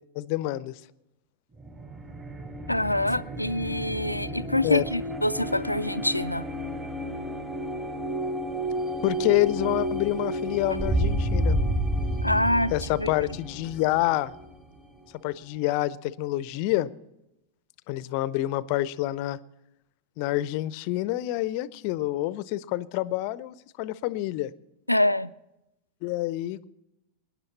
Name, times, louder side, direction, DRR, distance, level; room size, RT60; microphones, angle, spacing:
voice 1, 0.2-0.7 4.6-4.8 9.0-11.6 12.7-14.3 15.2-16.9 17.9-19.4 20.2-24.5 26.0-26.6, left 16 dB, 45° left, 0.6 m, -27 dB
sound 1, 1.5-15.0, right 1 dB, 20° right, 2.5 m, -31 dB
voice 2, 2.7-6.5 12.2-12.7 13.0-13.1 24.9-25.3, left 1 dB, 90° left, 0.4 m, -25 dB
22.0 x 10.5 x 4.2 m
figure-of-eight pair, 90°, 0 cm